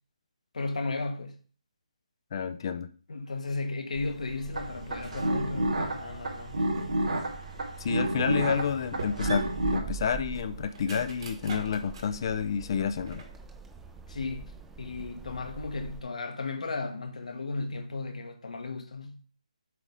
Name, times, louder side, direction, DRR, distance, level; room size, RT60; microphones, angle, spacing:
voice 1, 0.5-1.4 3.1-6.6 14.1-19.2, left 3 dB, 70° left, 1.4 m, -35 dB
voice 2, 2.3-2.9 7.8-13.2, left 7 dB, 40° left, 0.5 m, -30 dB
sound 1, 3.9-16.0, right 6 dB, 10° right, 0.6 m, -45 dB
sound 2, 4.5-9.8, right 1 dB, 75° right, 3.0 m, -30 dB
sound 3, 5.0-5.4 5.9-7.0 7.5-7.6 8.2-8.7 9.0-12.2 12.6-13.5, right 3 dB, 50° right, 1.7 m, -42 dB
7.6 x 4.1 x 4.9 m
figure-of-eight pair, 155°, 4 cm